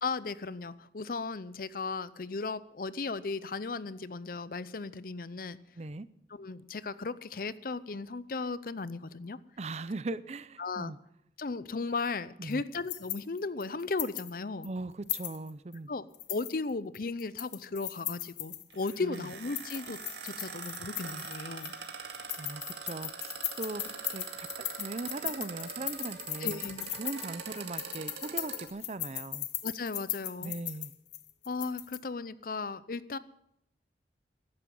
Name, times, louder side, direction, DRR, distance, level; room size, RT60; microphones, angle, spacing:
voice 1, 0.0-5.6 6.3-9.4 10.6-10.9 11.4-14.7 15.9-21.7 26.4-26.9 29.6-30.5 31.5-33.2, left 3 dB, 55° left, 17 dB, 0.6 m, -36 dB
voice 2, 5.7-6.1 9.6-11.0 12.4-12.6 14.6-15.9 19.0-19.3 22.4-23.8 24.1-29.5 30.4-30.9, right 2 dB, 40° right, 16 dB, 0.5 m, -39 dB
sound 1, 12.5-14.3 14.6-14.7 15.1-15.7 16.1-19.0 19.4-21.8 22.1-32.0, left 15 dB, 80° left, 1.0 m, -38 dB
sound 2, 18.7-28.7, right 5 dB, 80° right, 2.0 m, -43 dB
15.0 x 12.0 x 5.4 m, 0.77 s
head